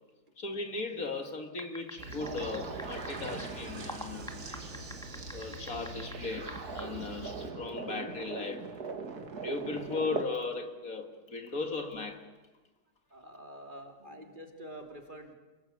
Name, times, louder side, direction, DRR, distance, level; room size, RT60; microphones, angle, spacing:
voice 1, 0.4-4.4 5.3-8.7 9.4-12.3, left 3 dB, 60° left, 2.5 m, -37 dB
sound 1, 1.6-3.4 3.9-6.2 6.5-6.8, equal, ahead, 1.8 m, -43 dB
Fixed-wing aircraft airplane, 2.0-7.5, right 1 dB, 45° right, 3.2 m, -45 dB
sound 2, 2.2-10.3, right 4 dB, 70° right, 2.5 m, -41 dB
voice 2, 13.1-15.3, equal, 30° right, 2.9 m, -47 dB
29.0 x 19.5 x 8.5 m
omnidirectional pair, 1.7 m